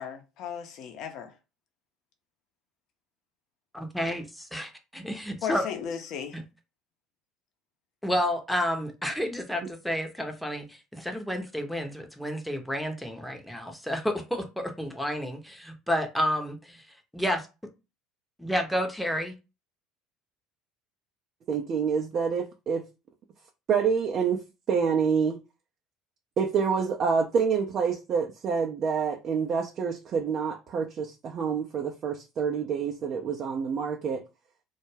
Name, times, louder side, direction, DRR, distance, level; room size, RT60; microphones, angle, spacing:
voice 1, 0.0-1.3 5.4-6.4, left 8 dB, 60° left, 0.6 m, -36 dB
voice 2, 3.7-5.6 6.3-6.4 8.0-16.8 17.1-17.5 18.4-19.3, equal, ahead, 0.7 m, -30 dB
voice 3, 21.5-22.8 23.7-25.4 26.4-34.2, right 6 dB, 45° right, 0.5 m, -27 dB
2.2 x 2.1 x 3.2 m
hypercardioid pair, 70°, 0 cm